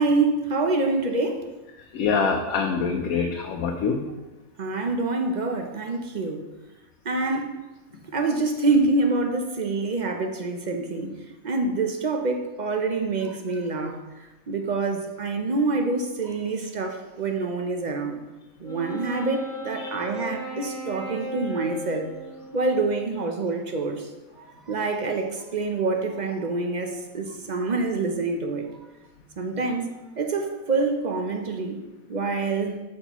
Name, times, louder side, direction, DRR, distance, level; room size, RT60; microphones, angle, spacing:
voice 1, 0.0-1.5 4.6-6.5 7.0-7.6 8.1-11.1 11.4-14.0 14.5-18.2 18.6-22.1 22.5-28.6 29.4-31.8 32.1-32.8, right 3 dB, 50° right, 4 dB, 0.6 m, -26 dB
voice 2, 1.9-4.0 19.8-19.9, left 5 dB, 80° left, 2 dB, 1.1 m, -25 dB
Wind instrument woodwind instrument, 18.6-23.2, equal, 5° left, 1.4 m, -37 dB
8.2 x 6.4 x 3.0 m, 1.1 s
omnidirectional pair, 1.5 m